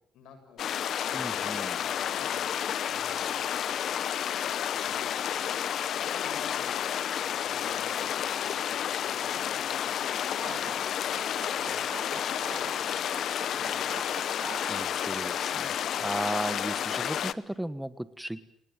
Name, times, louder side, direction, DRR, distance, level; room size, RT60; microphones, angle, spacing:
voice 1, 0.1-0.7 1.1-3.6 4.7-5.5 5.9-8.5 9.0-11.1 11.4-12.9 13.5-14.1, left 6 dB, 85° left, 6 dB, 7.8 m, -51 dB
sound 1, 0.6-17.3, left 9 dB, 70° left, 1.0 m, -31 dB
voice 2, 1.1-1.8 14.7-15.7 16.0-18.5, right 1 dB, 5° right, 13 dB, 1.5 m, -35 dB
sound 2, 10.3-15.3, right 7 dB, 50° right, 1.9 m, -45 dB
29.0 x 20.0 x 9.2 m, 0.73 s
cardioid pair, 90°, 0 cm